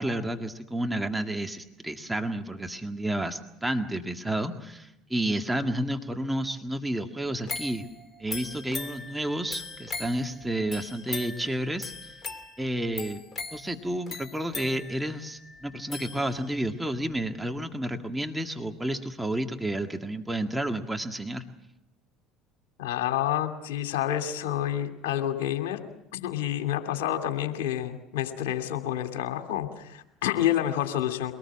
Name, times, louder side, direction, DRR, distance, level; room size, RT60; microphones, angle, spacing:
voice 1, 0.0-7.9 8.2-12.1 12.6-13.2 13.5-21.4, right 1 dB, 10° right, 5 dB, 1.9 m, -31 dB
sound 1, 7.5-16.7 17.2-17.3, left 4 dB, 30° left, 2.5 m, -40 dB
voice 2, 22.8-25.8 26.1-31.3, left 11 dB, 70° left, 6 dB, 2.7 m, -29 dB
24.5 x 19.5 x 7.4 m, 0.87 s
hypercardioid pair, 65°, 0 cm